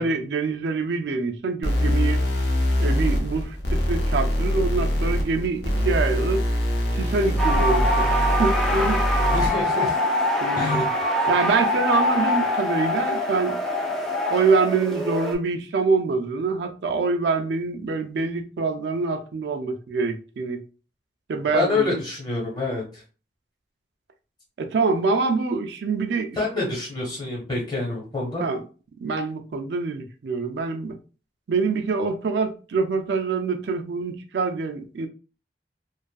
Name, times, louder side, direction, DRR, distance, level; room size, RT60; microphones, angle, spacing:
voice 1, 0.0-2.2 2.8-6.5 6.9-9.0 10.4-10.9 11.3-13.6 14.3-20.6 21.3-21.9 24.6-26.6 28.4-28.6 29.0-31.0 31.5-35.1, right 4 dB, 70° right, 0.4 m, -25 dB
sound 1, 1.6-9.6, equal, 65° left, 0.6 m, -23 dB
sound 2, 7.4-15.4, left 1 dB, ahead, 0.3 m, -24 dB
voice 2, 9.3-9.9 10.5-11.0 21.5-23.0 26.3-28.4, left 3 dB, 25° left, 1.0 m, -27 dB
2.6 x 2.4 x 2.3 m
head